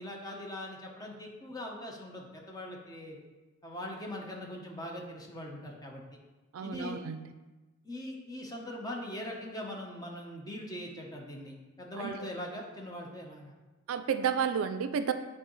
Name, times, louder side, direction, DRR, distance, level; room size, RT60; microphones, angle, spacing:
voice 1, 0.0-3.2 3.6-6.0 6.6-7.0 7.8-13.5, left 1 dB, 20° left, -1 dB, 0.8 m, -41 dB
voice 2, 6.5-7.3 11.9-12.1 13.9-15.1, right 7 dB, 70° right, 10 dB, 0.3 m, -31 dB
8.7 x 3.6 x 3.1 m, 1.2 s
head